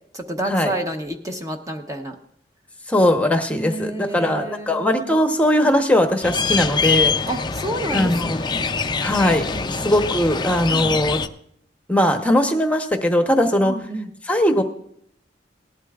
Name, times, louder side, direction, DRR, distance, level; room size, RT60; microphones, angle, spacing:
voice 1, 0.1-2.2 3.5-5.2 7.3-8.6 9.5-9.7 10.7-11.0 13.4-14.1, right 1 dB, 20° right, 4 dB, 0.9 m, -30 dB
voice 2, 2.9-7.1 7.9-8.4 9.0-11.2 11.9-13.7 14.2-14.6, left 1 dB, 10° left, 5 dB, 0.9 m, -19 dB
sound 1, 6.2-11.3, left 5 dB, 25° left, 0.4 m, -24 dB
18.5 x 12.0 x 2.4 m, 0.67 s
head